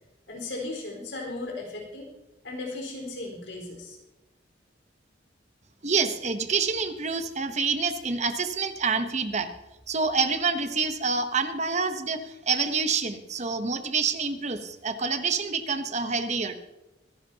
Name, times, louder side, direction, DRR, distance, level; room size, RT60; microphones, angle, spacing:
voice 1, 0.3-2.1 2.4-4.0, left 2 dB, 70° left, 0 dB, 4.5 m, -36 dB
voice 2, 5.8-9.5 9.9-16.6, right 4 dB, 40° right, 9 dB, 0.9 m, -27 dB
24.0 x 11.0 x 2.9 m, 1.0 s
head